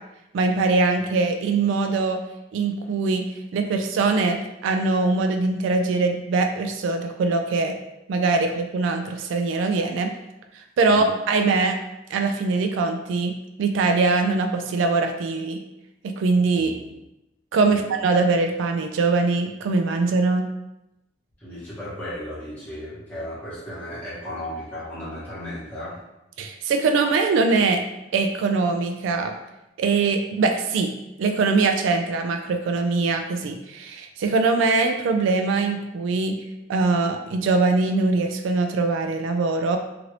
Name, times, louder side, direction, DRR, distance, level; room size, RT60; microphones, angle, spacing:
voice 1, 0.3-2.2 2.5-3.3 3.5-7.8 8.1-10.1 10.8-11.8 12.1-13.3 13.6-15.6 16.0-16.7 17.5-20.5 26.4-27.8 28.1-29.3 29.8-30.9 31.2-36.4 36.7-39.8, right 3 dB, 85° right, 5 dB, 0.3 m, -22 dB
voice 2, 16.6-16.9 17.7-17.8 21.4-26.0, left 1 dB, 10° left, -10 dB, 1.1 m, -35 dB
2.9 x 2.5 x 3.0 m, 0.90 s
head